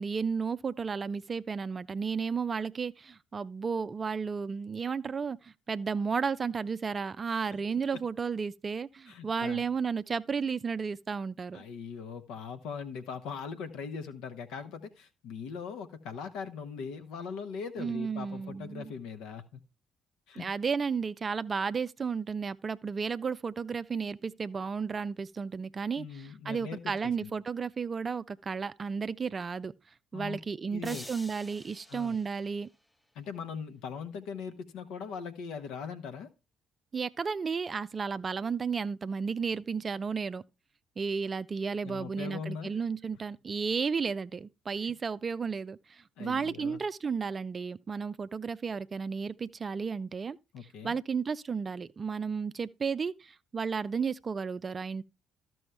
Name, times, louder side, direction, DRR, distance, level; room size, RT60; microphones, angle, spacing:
voice 1, 0.0-11.6 17.8-18.9 20.4-29.7 30.1-32.7 36.9-40.4 41.0-50.4 50.8-55.0, right 5 dB, 35° right, 0.4 m, -33 dB
voice 2, 9.1-9.6 11.5-19.6 20.3-20.5 26.0-27.3 30.1-30.4 30.7-31.1 31.9-32.2 33.1-36.3 41.8-42.7 46.2-46.8 50.5-51.0, left 6 dB, 60° left, 1.0 m, -40 dB
sound 1, 30.8-33.1, left 1 dB, 10° left, 0.8 m, -49 dB
13.0 x 6.2 x 3.4 m
figure-of-eight pair, 50°, 0 cm